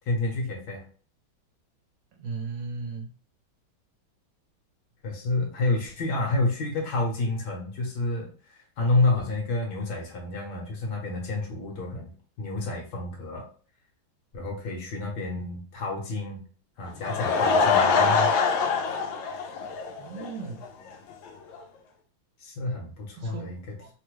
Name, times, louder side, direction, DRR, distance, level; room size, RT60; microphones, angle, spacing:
voice 1, 0.1-0.8 5.0-12.1 12.4-13.4 14.3-16.5 16.8-18.3 22.4-23.8, left 2 dB, 65° left, 0 dB, 1.4 m, -29 dB
voice 2, 2.2-3.1 20.0-20.6 23.2-23.9, right 4 dB, 80° right, 1 dB, 1.3 m, -36 dB
Laughter / Crowd, 16.8-20.3 20.6-20.7 21.3-21.4 21.5-21.6, left 5 dB, 80° left, 1.3 m, -24 dB
3.5 x 2.1 x 3.0 m, 0.40 s
omnidirectional pair, 2.2 m